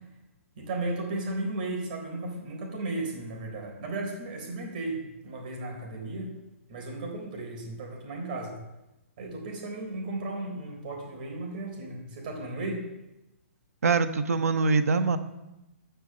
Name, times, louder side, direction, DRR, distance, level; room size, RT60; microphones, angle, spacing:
voice 1, 0.6-6.3 6.7-8.6 9.2-12.8, right 2 dB, 35° right, 1 dB, 3.8 m, -35 dB
voice 2, 13.8-15.2, right 4 dB, 85° right, 10 dB, 1.2 m, -23 dB
13.5 x 6.0 x 8.7 m, 0.96 s
hypercardioid pair, 170°, 8 cm